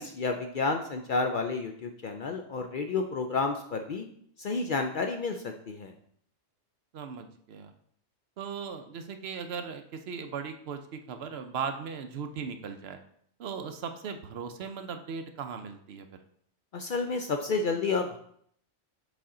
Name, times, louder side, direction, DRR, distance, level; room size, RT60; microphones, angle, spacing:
voice 1, 0.0-4.1 4.4-5.9 16.7-18.2, left 4 dB, 60° left, 5 dB, 0.6 m, -30 dB
voice 2, 6.9-7.7 8.4-13.0 13.4-16.1, right 6 dB, 65° right, 7 dB, 0.8 m, -38 dB
7.0 x 4.4 x 3.7 m, 0.66 s
omnidirectional pair, 1.2 m